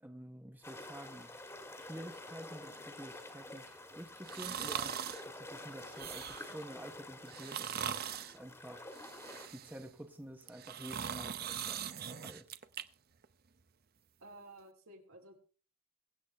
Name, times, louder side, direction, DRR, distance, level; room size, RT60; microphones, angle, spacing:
voice 1, 0.0-1.3 1.7-4.9 5.2-7.9 8.3-8.9 9.5-12.5, right 1 dB, 10° right, 5 dB, 0.9 m, -49 dB
sound 1, 0.6-9.5, left 1 dB, 15° left, 1.6 m, -49 dB
sound 2, 4.3-5.2 5.8-6.6 7.3-8.4 8.9-9.9 10.4-12.8 13.2-13.3, right 8 dB, 45° right, 0.7 m, -41 dB
voice 2, 14.2-15.4, right 2 dB, 75° right, 2 dB, 3.3 m, -54 dB
22.5 x 8.2 x 3.3 m, 0.40 s
head